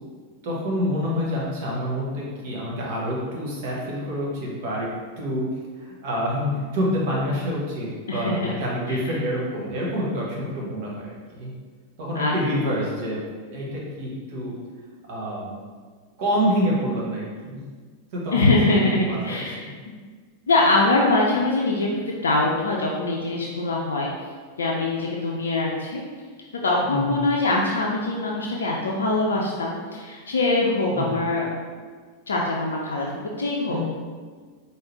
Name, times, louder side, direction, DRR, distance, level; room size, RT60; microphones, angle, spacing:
voice 1, 0.4-5.5 5.8-11.5 12.0-13.2 13.5-14.5 15.1-15.5 16.2-17.6 18.1-19.7 26.8-27.2 30.9-31.2 33.7-33.8, equal, 50° right, -4 dB, 1.2 m, -27 dB
voice 2, 8.1-8.5 8.9-9.0 12.1-12.3 18.3-19.9 20.5-24.1 24.6-26.0 26.6-31.5 32.3-33.1 33.4-33.8, left 2 dB, 70° left, -2 dB, 0.4 m, -23 dB
4.7 x 2.8 x 3.1 m, 1.6 s
figure-of-eight pair, 90°, 0 cm